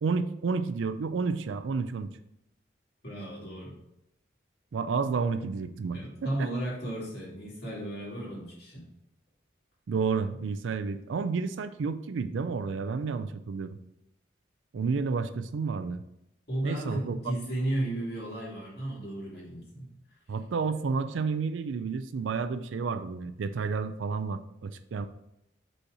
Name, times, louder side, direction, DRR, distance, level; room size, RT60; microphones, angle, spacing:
voice 1, 0.0-2.1 4.7-6.5 9.9-13.8 14.7-16.0 16.6-17.4 20.3-25.1, right 5 dB, 80° right, 11 dB, 0.4 m, -31 dB
voice 2, 3.0-3.7 5.9-8.8 16.5-19.9, right 1 dB, 55° left, -5 dB, 2.5 m, -34 dB
5.3 x 4.3 x 4.8 m, 0.83 s
head